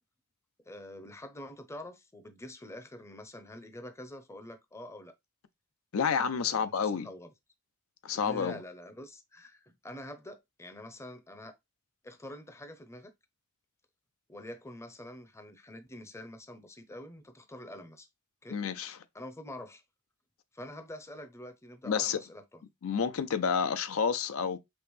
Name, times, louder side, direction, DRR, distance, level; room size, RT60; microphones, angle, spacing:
voice 1, 0.7-5.1 6.4-7.3 8.1-11.6 12.0-13.1 14.3-18.1 18.4-18.6 19.1-19.8 20.5-22.6 23.5-23.6, left 1 dB, 15° left, 0.6 m, -46 dB
voice 2, 5.9-7.1 8.0-8.6 18.5-19.0 21.8-22.2 22.8-24.6, left 6 dB, 75° left, 0.5 m, -29 dB
5.3 x 2.9 x 3.1 m
head